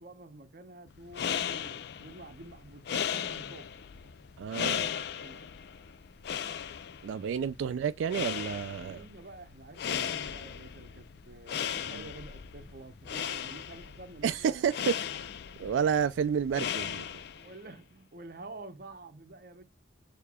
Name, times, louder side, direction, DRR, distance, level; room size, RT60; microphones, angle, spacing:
voice 1, 0.0-3.7 4.0-4.1 4.6-5.5 7.6-7.7 8.8-14.9 17.3-19.6, right 2 dB, 50° right, 0.8 m, -49 dB
sound 1, 0.9-17.6, left 8 dB, 60° left, 0.4 m, -37 dB
voice 2, 4.4-4.8 7.0-9.0 11.8-12.0 14.2-15.0 15.6-17.1, right 7 dB, 85° right, 0.3 m, -30 dB
6.6 x 2.8 x 2.2 m
head